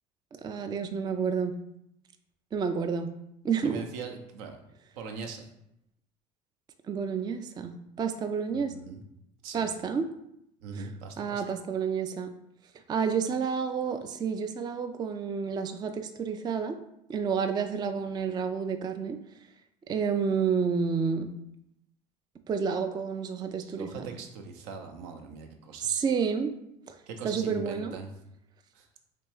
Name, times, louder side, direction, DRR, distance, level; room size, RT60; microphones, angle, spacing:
voice 1, 0.4-1.6 2.5-3.1 3.4-3.9 6.9-8.7 9.5-10.1 10.7-10.9 11.2-12.3 12.9-16.8 17.1-19.2 19.9-21.3 22.5-24.1 25.8-26.5 26.9-27.0 27.2-28.0, right 6 dB, 20° right, 8 dB, 0.3 m, -30 dB
voice 2, 3.6-4.6 4.9-5.5 8.5-9.0 9.4-9.7 10.6-11.4 23.6-26.0 27.1-28.1 28.7-28.9, right 5 dB, 65° right, 4 dB, 0.6 m, -41 dB
3.4 x 3.3 x 3.0 m, 0.78 s
hypercardioid pair, 65°, 21 cm